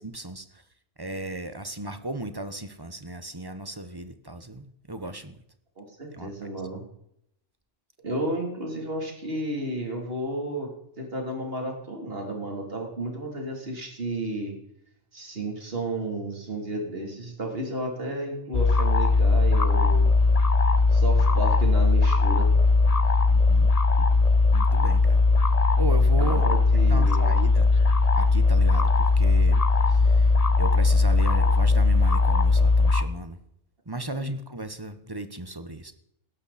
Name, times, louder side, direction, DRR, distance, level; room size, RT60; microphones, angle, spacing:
voice 1, 0.0-0.5 1.0-5.4 6.1-6.5 23.3-23.7 24.0-24.1 24.5-25.2 25.8-26.5 26.9-27.7 28.1-30.3 30.6-33.4 33.9-35.9, right 2 dB, 20° right, 10 dB, 1.0 m, -35 dB
voice 2, 5.8-6.8 8.0-10.7 11.0-14.6 15.1-20.1 20.9-22.5 26.2-27.3 34.2-34.3, right 1 dB, 45° right, 1 dB, 3.6 m, -32 dB
sound 1, 18.5-33.0, left 3 dB, 35° left, 0.8 m, -19 dB
18.0 x 12.0 x 4.3 m, 0.74 s
omnidirectional pair, 1.3 m